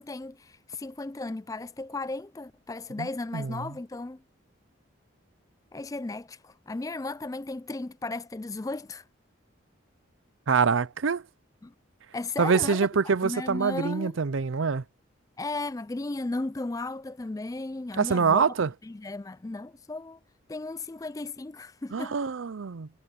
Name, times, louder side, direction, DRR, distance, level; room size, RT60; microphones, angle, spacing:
voice 1, 0.0-4.2 5.7-9.0 11.6-11.7 12.1-14.2 15.4-18.5 18.8-20.2 20.5-22.2, left 2 dB, 15° left, 0.3 m, -35 dB
voice 2, 3.3-3.7 10.5-11.2 12.4-14.8 18.0-18.7 21.9-22.9, right 5 dB, 75° right, 0.6 m, -25 dB
head